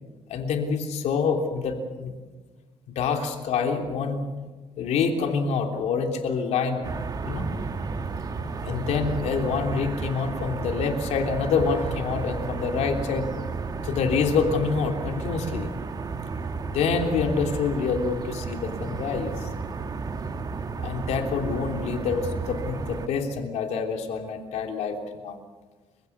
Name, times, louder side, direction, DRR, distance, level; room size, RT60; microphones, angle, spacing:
voice 1, 0.3-2.2 2.9-4.2 4.8-6.9 7.2-7.5 8.6-13.3 13.8-15.7 16.7-19.5 20.8-25.4, left 5 dB, 85° left, 4 dB, 3.2 m, -26 dB
sound 1, 6.8-23.1, right 4 dB, 35° right, 1.6 m, -32 dB
29.5 x 16.0 x 8.1 m, 1.3 s
cardioid pair, 130°, 11 cm